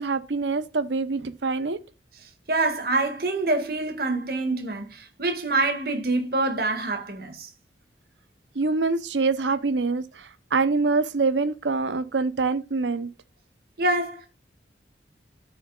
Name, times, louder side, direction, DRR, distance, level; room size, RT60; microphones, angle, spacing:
voice 1, 0.0-1.8 8.5-13.1, right 4 dB, 85° right, 0.8 m, -25 dB
voice 2, 2.5-7.5 13.8-14.3, right 2 dB, 55° right, 2.0 m, -26 dB
13.5 x 6.4 x 2.4 m
head